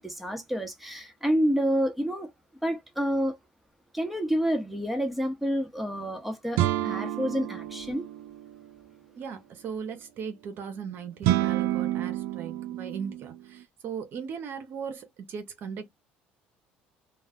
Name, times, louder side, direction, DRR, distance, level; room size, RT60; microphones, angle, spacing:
voice 1, 0.0-2.3 2.6-3.4 3.9-8.1, equal, ahead, 1.1 m, -28 dB
sound 1, 6.6-8.6 11.2-13.4, right 14 dB, 80° right, 0.3 m, -28 dB
voice 2, 9.2-15.9, right 6 dB, 60° right, 0.8 m, -38 dB
2.3 x 2.3 x 3.5 m
supercardioid pair, 80°, 4 cm